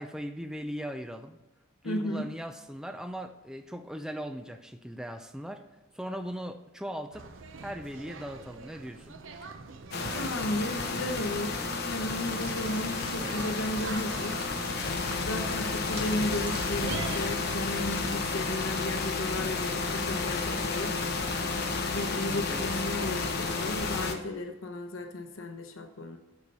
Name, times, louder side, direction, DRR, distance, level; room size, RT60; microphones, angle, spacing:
voice 1, 0.0-1.4 1.8-5.6 5.9-7.3 7.6-9.2 22.3-22.7 24.3-24.4, equal, 5° right, 7 dB, 0.4 m, -39 dB
voice 2, 1.8-2.3 10.1-14.5 15.2-21.0 21.8-26.2, left 1 dB, 90° left, 5 dB, 0.8 m, -34 dB
sound 1, 7.1-17.2, right 4 dB, 70° right, 0.7 m, -43 dB
sound 2, 9.9-24.1, left 4 dB, 55° left, 0.9 m, -31 dB
sound 3, 12.0-18.6, right 2 dB, 25° right, 1.7 m, -47 dB
7.0 x 6.5 x 5.4 m, 1.0 s
head